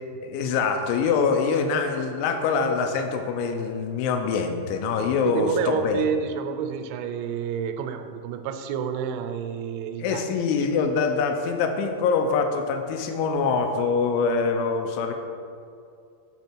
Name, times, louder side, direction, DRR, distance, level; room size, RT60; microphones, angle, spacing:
voice 1, 0.2-6.0 10.0-15.1, left 5 dB, 85° left, 5 dB, 3.1 m, -24 dB
voice 2, 5.2-10.3, right 8 dB, 90° right, 7 dB, 3.0 m, -29 dB
6.5 x 5.6 x 4.5 m, 2.4 s
omnidirectional pair, 5.3 m